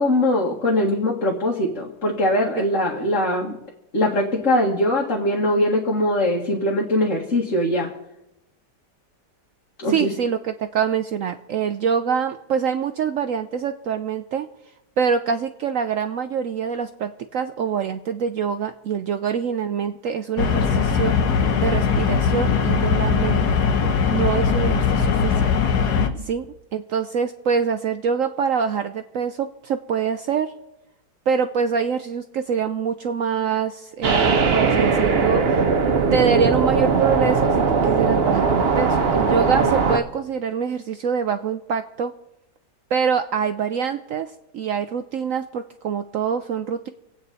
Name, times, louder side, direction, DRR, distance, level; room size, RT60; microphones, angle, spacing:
voice 1, 0.0-3.6 3.9-7.9 9.8-10.1, left 1 dB, 50° left, -2 dB, 2.0 m, -21 dB
voice 2, 9.8-14.5 15.0-21.1 21.6-23.4 24.1-25.4 26.2-26.5 26.7-30.5 31.3-35.6 36.1-42.1 42.9-46.9, right 6 dB, 65° right, 8 dB, 0.9 m, -25 dB
sound 1, 20.4-26.1, left 6 dB, 70° left, 1.6 m, -20 dB
sound 2, 34.0-40.0, right 5 dB, 40° right, 1.1 m, -19 dB
26.0 x 8.7 x 4.1 m, 0.90 s
omnidirectional pair, 1.8 m